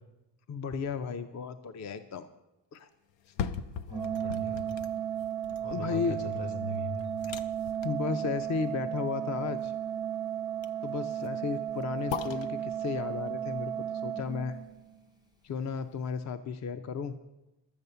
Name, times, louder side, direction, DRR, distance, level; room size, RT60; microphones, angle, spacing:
voice 1, 0.5-2.3 2.7-2.9 5.7-6.2 7.8-9.7 10.8-14.6 15.4-17.1, left 5 dB, 40° left, 10 dB, 0.5 m, -34 dB
sound 1, 3.1-15.1 15.6-15.7, left 8 dB, 90° left, 0.7 m, -42 dB
voice 2, 3.8-4.8 5.6-7.1, left 2 dB, 75° left, 5 dB, 1.5 m, -39 dB
Organ, 3.9-14.9, right 10 dB, 10° right, 0.4 m, -34 dB
12.5 x 7.8 x 6.7 m, 0.98 s
wide cardioid pair, 170°, 43 cm